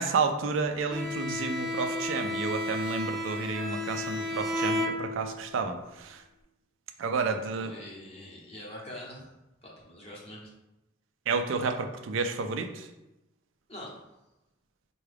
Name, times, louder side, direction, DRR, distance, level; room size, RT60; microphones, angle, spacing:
voice 1, 0.0-6.2 7.0-7.7 11.3-12.9, right 4 dB, 90° right, 7 dB, 0.4 m, -31 dB
Bowed string instrument, 0.9-5.5, left 1 dB, ahead, 0.4 m, -32 dB
voice 2, 7.6-9.3 9.6-10.5 13.7-14.0, left 1 dB, 30° left, -4 dB, 0.9 m, -44 dB
4.5 x 2.3 x 3.3 m, 0.94 s
head